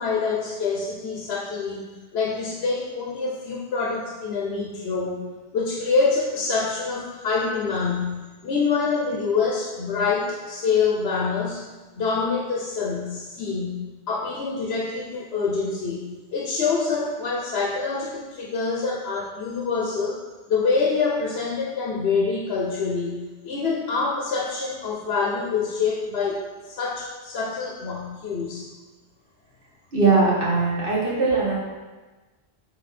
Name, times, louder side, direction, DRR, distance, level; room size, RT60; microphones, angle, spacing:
voice 1, 0.0-1.9 2.1-5.3 5.5-11.6 11.9-20.2 20.5-28.7, left 4 dB, 75° left, -3 dB, 1.0 m, -26 dB
voice 2, 29.9-31.5, right 3 dB, 55° right, -6 dB, 1.9 m, -20 dB
7.5 x 3.4 x 4.2 m, 1.3 s
omnidirectional pair, 1.1 m